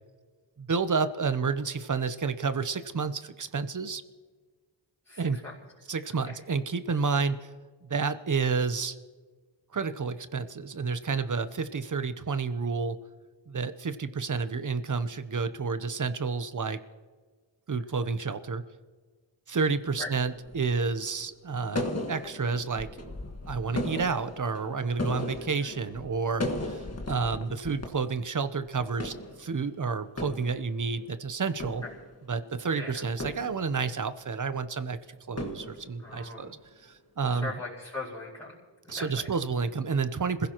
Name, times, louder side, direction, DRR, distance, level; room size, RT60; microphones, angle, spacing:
voice 1, 0.6-4.0 5.2-5.4 5.9-7.5 7.8-9.0 9.7-13.0 13.5-16.8 17.7-18.6 19.5-23.1 23.5-31.8 32.3-35.0 35.3-36.6 36.8-37.5 38.9-40.5, right 5 dB, 40° right, 11 dB, 0.9 m, -30 dB
voice 2, 5.0-5.5 12.0-12.1 18.0-18.1 20.0-20.1 25.6-25.7 31.8-31.9 32.7-33.0 36.0-36.6 37.2-38.6 38.8-39.3, left 2 dB, 10° left, -11 dB, 5.0 m, -40 dB
sound 1, 20.0-20.8 21.8-27.9 28.1-28.2 28.7-29.8 30.0-31.0 31.5-32.5 33.2-34.1 35.4-36.4, left 1 dB, 35° left, 1.7 m, -36 dB
26.5 x 16.0 x 3.0 m, 1.5 s
wide cardioid pair, 80°, 45 cm